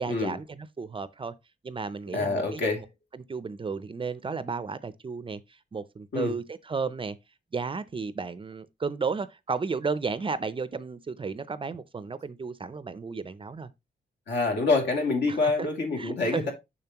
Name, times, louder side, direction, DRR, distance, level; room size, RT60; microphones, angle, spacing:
voice 1, 0.0-1.3 1.6-2.6 3.1-7.2 7.5-13.7 15.3-15.5 16.0-16.5, right 4 dB, 30° right, 0.5 m, -33 dB
voice 2, 2.1-2.8 6.1-6.3 14.3-16.5, left 3 dB, 70° left, 2.6 m, -26 dB
7.0 x 6.3 x 2.9 m
wide cardioid pair, 155°, 18 cm